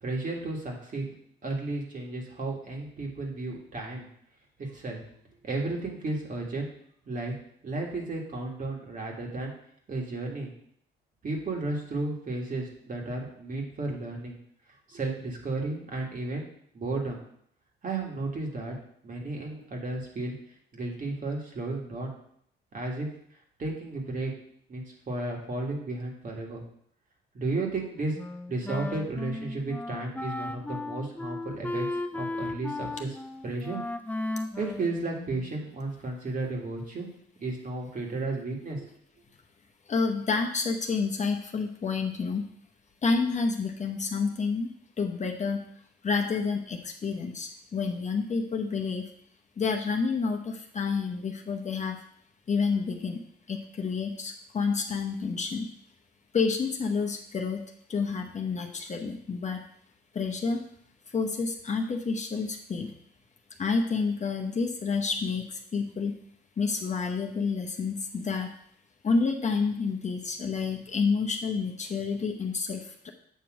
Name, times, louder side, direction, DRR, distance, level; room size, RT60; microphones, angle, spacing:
voice 1, 0.0-1.1 1.4-4.1 4.6-5.0 5.4-6.7 7.1-7.3 7.6-9.5 9.9-10.5 11.2-14.4 14.9-16.5 16.7-17.2 17.8-18.8 19.0-20.3 20.7-22.2 22.7-23.1 23.6-24.3 24.7-26.6 27.3-28.2 28.5-31.9 32.1-33.2 33.4-33.8 34.6-37.1 37.4-38.9, right 2 dB, 45° right, 0 dB, 1.9 m, -33 dB
Wind instrument woodwind instrument, 28.1-35.6, left 2 dB, 10° left, 0.4 m, -35 dB
voice 2, 39.9-42.5 43.0-44.7 45.0-45.7 46.0-49.1 49.6-52.0 52.5-53.2 53.5-55.7 56.3-57.6 57.9-59.7 60.1-60.6 61.1-62.9 63.6-66.2 66.6-68.5 69.0-73.1, left 4 dB, 35° left, 3 dB, 0.8 m, -29 dB
8.3 x 3.0 x 6.2 m, 0.67 s
cardioid pair, 90°, 20 cm